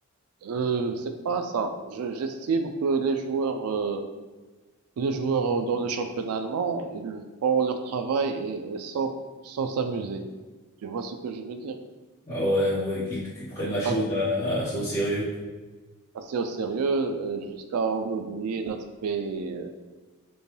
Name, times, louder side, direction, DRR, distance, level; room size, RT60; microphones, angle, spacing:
voice 1, 0.4-4.1 5.0-9.1 9.4-10.3 10.8-11.8 13.8-14.0 16.1-19.7, right 5 dB, 85° right, 7 dB, 0.3 m, -28 dB
voice 2, 12.2-15.3, equal, 35° left, -13 dB, 1.1 m, -27 dB
5.2 x 2.2 x 3.2 m, 1.3 s
head